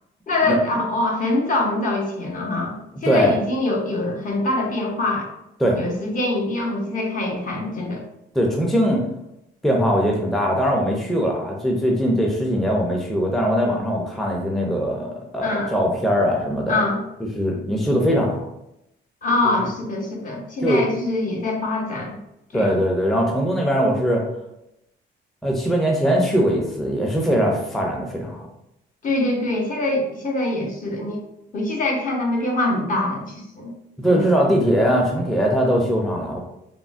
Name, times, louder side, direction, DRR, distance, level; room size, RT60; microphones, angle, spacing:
voice 1, 0.3-5.3 5.8-8.0 15.4-15.7 16.7-17.0 19.2-22.2 22.5-22.8 29.0-31.2 31.5-33.7 34.1-34.3, left 2 dB, 40° left, -1 dB, 0.8 m, -24 dB
voice 2, 8.3-9.0 9.6-16.8 17.4-18.4 19.6-19.7 20.6-20.8 22.5-24.2 25.4-28.4 34.0-36.4, equal, ahead, -1 dB, 0.4 m, -21 dB
3.5 x 2.0 x 2.4 m, 0.85 s
cardioid pair, 90°, 20 cm